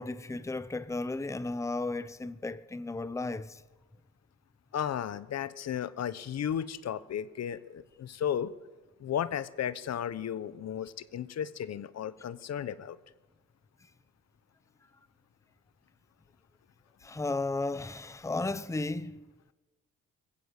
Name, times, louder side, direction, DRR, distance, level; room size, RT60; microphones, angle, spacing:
voice 1, 0.0-3.6 17.0-19.3, left 2 dB, 10° left, 0.8 m, -34 dB
voice 2, 4.7-8.5 9.0-13.0, left 9 dB, 60° left, 1.1 m, -34 dB
20.5 x 16.0 x 8.2 m
cardioid pair, 90°, 30 cm